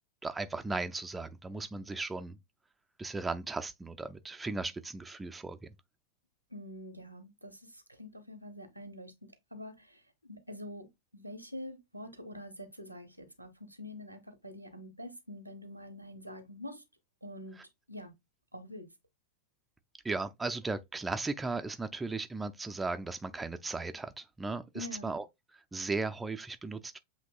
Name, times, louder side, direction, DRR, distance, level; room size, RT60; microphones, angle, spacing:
voice 1, 0.2-2.4 3.0-5.7 17.6-17.7 20.0-25.2 25.7-27.0, right 3 dB, 10° right, 0.4 m, -36 dB
voice 2, 6.5-10.9 11.1-16.8 17.2-17.6 17.9-18.1 18.5-18.9 24.7-25.2, left 1 dB, 90° right, 0.9 m, -46 dB
7.4 x 2.9 x 2.3 m
figure-of-eight pair, 90°, 0 cm